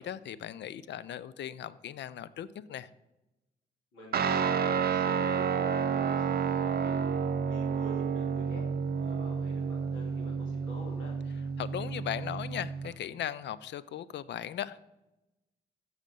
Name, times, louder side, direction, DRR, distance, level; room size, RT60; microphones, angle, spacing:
voice 1, 0.0-2.9 11.6-14.8, left 10 dB, 60° left, 17 dB, 0.5 m, -38 dB
voice 2, 3.9-7.0 7.4-11.2, right 1 dB, 80° left, -2 dB, 2.4 m, -47 dB
Guitar, 4.1-12.9, right 6 dB, 50° right, 0.6 m, -30 dB
6.5 x 6.3 x 5.3 m, 0.96 s
hypercardioid pair, 45°, 20 cm